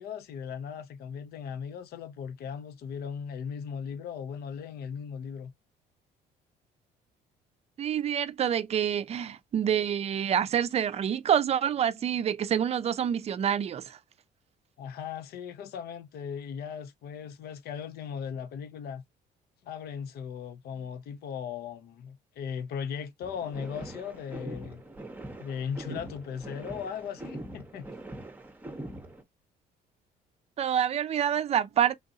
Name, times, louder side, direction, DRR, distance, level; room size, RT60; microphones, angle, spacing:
voice 1, 0.0-5.5 14.8-19.0 19.6-24.8 25.4-27.9, left 7 dB, 70° left, 0.9 m, -38 dB
voice 2, 7.8-14.0 30.6-31.9, right 9 dB, 40° right, 0.5 m, -27 dB
sound 1, 23.2-29.2, right 1 dB, 10° right, 0.9 m, -42 dB
3.7 x 2.6 x 2.6 m
cardioid pair, 110°, 17 cm